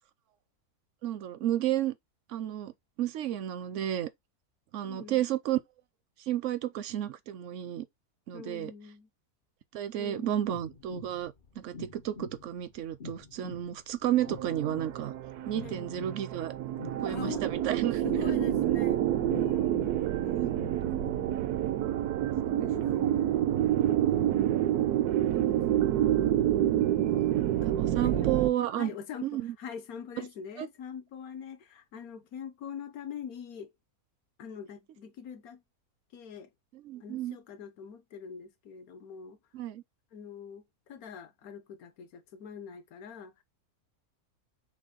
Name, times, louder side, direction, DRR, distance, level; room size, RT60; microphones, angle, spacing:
voice 1, 1.0-1.9 2.3-2.7 3.0-4.1 4.7-5.6 6.3-7.9 8.3-8.7 9.7-15.1 15.5-16.5 17.0-18.3 20.3-20.5 22.4-23.1 23.9-24.5 27.1-28.9 29.2-29.5 30.6-30.7 36.7-37.4 39.5-39.8, right 12 dB, 65° right, 0.8 m, -32 dB
voice 2, 4.8-5.2 8.3-9.1 10.0-10.5 15.6-16.0 17.1-17.5 18.0-21.5 22.4-23.4 23.8-24.6 27.9-28.4 28.8-33.7 34.4-35.6 36.1-36.5 37.0-39.4 40.1-43.4, left 7 dB, 70° left, 1.3 m, -44 dB
sound 1, 10.5-21.2, left 4 dB, 50° left, 0.6 m, -46 dB
sound 2, 14.2-28.5, right 12 dB, 85° right, 1.1 m, -28 dB
6.2 x 2.3 x 3.8 m
omnidirectional pair, 1.6 m